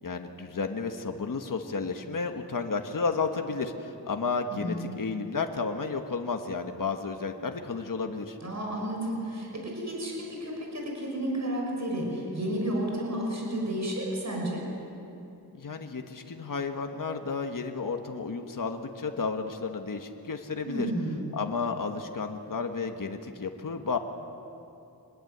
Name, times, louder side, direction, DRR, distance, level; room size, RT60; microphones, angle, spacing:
voice 1, 0.0-8.4 15.5-20.9 21.3-24.0, left 4 dB, 55° left, 5 dB, 1.5 m, -32 dB
voice 2, 4.5-4.9 8.4-14.6 20.6-21.2, right 1 dB, 45° right, -1 dB, 6.1 m, -32 dB
26.0 x 20.5 x 8.1 m, 2.8 s
wide cardioid pair, 100°, 38 cm